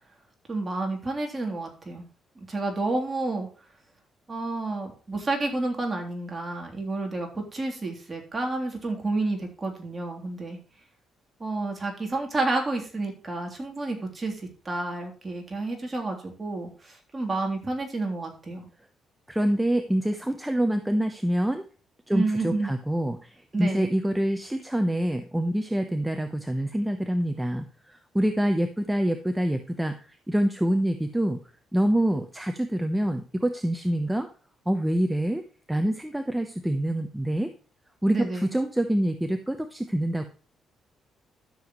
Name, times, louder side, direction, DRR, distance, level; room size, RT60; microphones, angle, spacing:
voice 1, 0.5-2.1 2.4-3.5 4.3-10.6 11.4-18.7 22.1-22.7 23.5-23.9 38.1-38.5, right 2 dB, 25° right, 1 dB, 3.3 m, -30 dB
voice 2, 19.3-21.7 22.1-31.4 31.7-34.3 34.7-37.5 38.0-40.2, right 1 dB, 5° right, 7 dB, 1.0 m, -26 dB
12.5 x 7.1 x 3.1 m, 0.38 s
cardioid pair, 90°, 0 cm